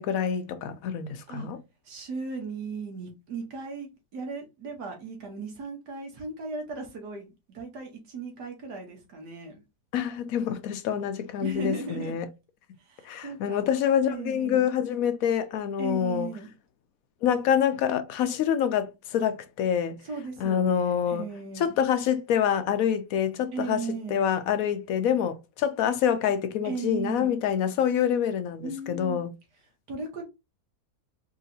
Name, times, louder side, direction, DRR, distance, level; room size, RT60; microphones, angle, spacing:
voice 1, 0.0-1.6 9.9-12.3 13.0-16.3 17.2-20.0 20.4-21.2 21.6-29.3, left 8 dB, 70° left, 0.9 m, -26 dB
voice 2, 1.9-9.6 11.4-12.1 12.8-13.7 14.1-14.7 15.8-16.5 20.0-21.7 23.5-24.2 26.6-27.4 28.6-29.2 29.9-30.2, right 4 dB, 80° right, 1.7 m, -37 dB
4.8 x 2.8 x 2.7 m
omnidirectional pair, 1.7 m